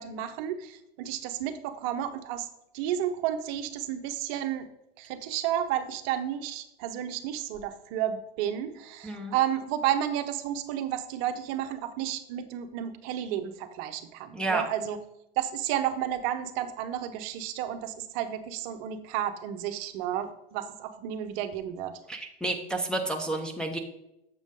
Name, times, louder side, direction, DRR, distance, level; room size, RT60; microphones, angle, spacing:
voice 1, 0.0-2.5 2.7-4.7 5.0-15.0 15.4-22.0, right 10 dB, 45° right, 9 dB, 0.7 m, -32 dB
voice 2, 9.0-9.3 14.3-14.6 22.1-23.8, right 2 dB, 5° left, 0 dB, 0.6 m, -30 dB
7.4 x 5.1 x 3.7 m, 0.86 s
hypercardioid pair, 110°, 31 cm